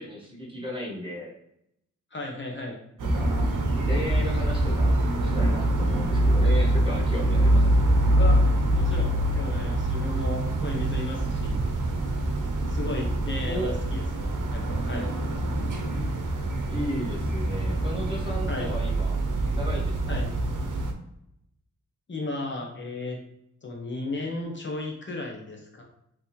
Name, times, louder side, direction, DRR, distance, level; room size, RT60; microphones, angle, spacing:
voice 1, 0.0-1.3 3.0-3.5 3.8-7.8 13.4-13.7 16.7-19.2 19.5-20.2, equal, 15° right, -3 dB, 1.1 m, -35 dB
voice 2, 2.1-2.8 8.1-11.6 12.7-15.1 18.5-18.7 20.1-20.3 22.1-23.2 23.6-25.8, left 2 dB, 40° left, 0 dB, 0.8 m, -35 dB
sound 1, 3.0-20.9, right 1 dB, 80° right, 0.8 m, -25 dB
5.5 x 2.9 x 3.1 m, 0.78 s
wide cardioid pair, 170°, 31 cm